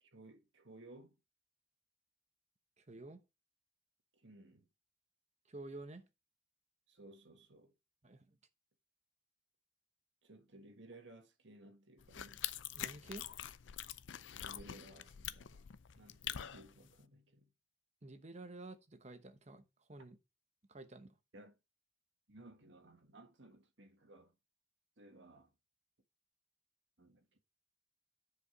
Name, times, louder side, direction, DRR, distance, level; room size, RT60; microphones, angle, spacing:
voice 1, 0.0-1.2 4.1-4.7 6.9-7.7 10.2-12.5 14.3-15.7 15.9-17.5 21.3-21.5 22.3-24.3 25.0-25.5 27.0-27.4, right 2 dB, 75° right, 1.5 m, -58 dB
voice 2, 2.8-3.2 5.5-6.1 8.0-8.3 12.8-13.5 18.0-20.2 20.7-21.1, right 2 dB, 40° right, 1.0 m, -51 dB
sound 1, 12.0-17.0, left 11 dB, 85° left, 0.5 m, -45 dB
9.8 x 5.0 x 5.0 m
head